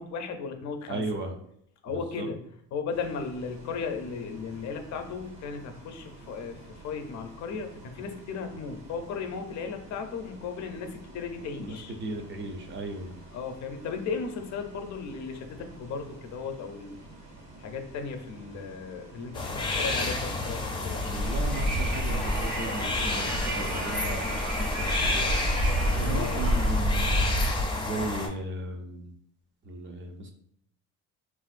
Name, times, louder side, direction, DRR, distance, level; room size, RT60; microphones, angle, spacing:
voice 1, 0.0-1.0 1.8-2.4 2.7-12.0 13.3-17.0 17.6-21.0 26.0-26.5, left 5 dB, 60° left, 6 dB, 0.5 m, -36 dB
voice 2, 0.9-1.3 1.9-2.3 11.6-13.1 21.0-25.4 25.9-27.1 27.7-29.1 29.7-30.3, right 2 dB, 40° right, 4 dB, 0.5 m, -36 dB
Bus, 2.9-21.9, right 2 dB, 65° right, 1.4 m, -49 dB
sound 1, 19.3-28.3, left 2 dB, 15° left, 0.4 m, -31 dB
Wind, 21.0-27.6, equal, 85° right, 1.1 m, -28 dB
3.4 x 2.5 x 2.4 m, 0.72 s
cardioid pair, 130°, 31 cm